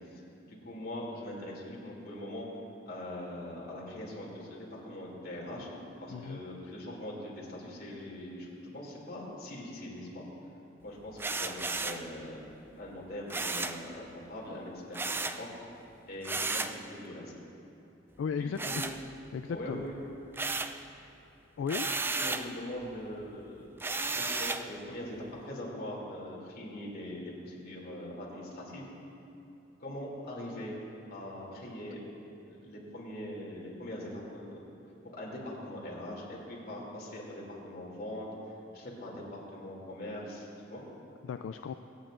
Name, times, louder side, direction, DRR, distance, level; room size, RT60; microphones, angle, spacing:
voice 1, 0.1-2.5 2.9-5.7 6.0-10.2 10.8-12.4 12.8-15.5 16.1-17.3 18.4-18.8 19.5-20.0 22.1-23.8 24.1-25.2 25.4-28.8 29.8-30.7 31.1-32.0 32.5-34.6 35.1-38.3 38.7-40.8, left 1 dB, 55° left, -4 dB, 2.7 m, -42 dB
sound 1, 4.9-11.4 11.7-11.8, equal, 90° right, 1.9 m, -56 dB
voice 2, 6.1-6.4 18.2-18.6 19.3-19.9 21.6-21.9 41.2-41.7, left 6 dB, 80° left, 8 dB, 0.3 m, -35 dB
sound 2, 11.2-12.1 13.3-13.8 14.9-15.4 16.2-16.8 18.6-19.4 19.8-20.8 21.7-22.5 23.8-24.7, right 3 dB, 10° right, 0.3 m, -33 dB
25.0 x 8.5 x 2.6 m, 2.9 s
head